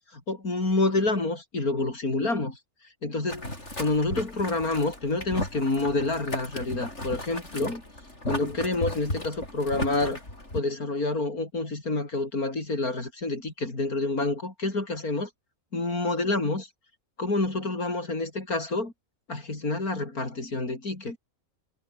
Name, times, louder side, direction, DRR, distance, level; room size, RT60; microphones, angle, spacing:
voice 1, 0.3-2.6 3.0-3.5 3.8-7.8 8.3-10.2 10.5-15.3 15.7-16.7 17.2-18.9 19.3-21.2, left 2 dB, 85° left, 5.7 m, -28 dB
Boiling, 3.3-10.6, left 1 dB, 50° left, 8.0 m, -35 dB
omnidirectional pair, 1.5 m